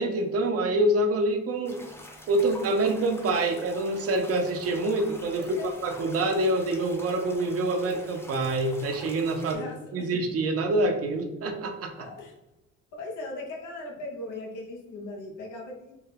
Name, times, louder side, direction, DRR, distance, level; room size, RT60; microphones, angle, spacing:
voice 1, 0.0-1.8 2.3-12.1, right 2 dB, 50° right, 4 dB, 0.6 m, -26 dB
sound 1, 1.6-9.5, left 1 dB, 10° left, 0.4 m, -46 dB
voice 2, 9.5-10.1 12.0-12.3 12.9-15.9, left 2 dB, 85° left, 1 dB, 0.8 m, -39 dB
3.3 x 2.2 x 3.3 m, 0.95 s
cardioid pair, 90°, 30 cm